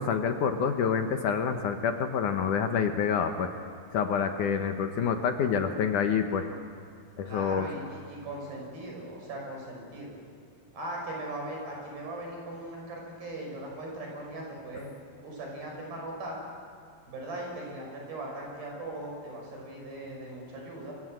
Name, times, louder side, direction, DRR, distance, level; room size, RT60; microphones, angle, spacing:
voice 1, 0.0-3.5 3.9-6.5 7.2-7.7, left 6 dB, 65° left, 6 dB, 2.3 m, -27 dB
voice 2, 7.2-10.2 10.7-14.9 15.2-16.4 17.1-20.9, right 1 dB, 70° right, 0 dB, 7.9 m, -39 dB
26.5 x 24.5 x 7.9 m, 2.2 s
omnidirectional pair, 4.3 m